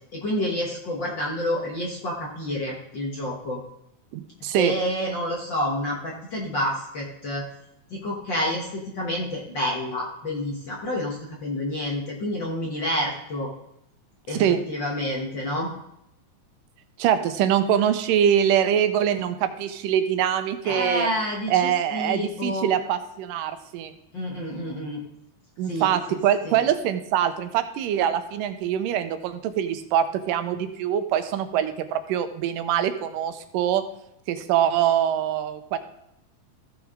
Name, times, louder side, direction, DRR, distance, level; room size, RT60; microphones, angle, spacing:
voice 1, 0.1-3.6 4.4-7.4 7.9-13.5 14.3-14.4 14.7-15.7 20.6-22.7 24.1-25.0 25.7-26.2 26.4-26.6, left 1 dB, 55° left, -2 dB, 1.4 m, -29 dB
voice 2, 4.1-4.7 14.3-14.6 17.0-21.1 21.5-23.9 25.6-33.8 34.3-35.8, right 9 dB, 90° right, 9 dB, 2.4 m, -24 dB
14.5 x 6.1 x 3.7 m, 0.82 s
omnidirectional pair, 3.8 m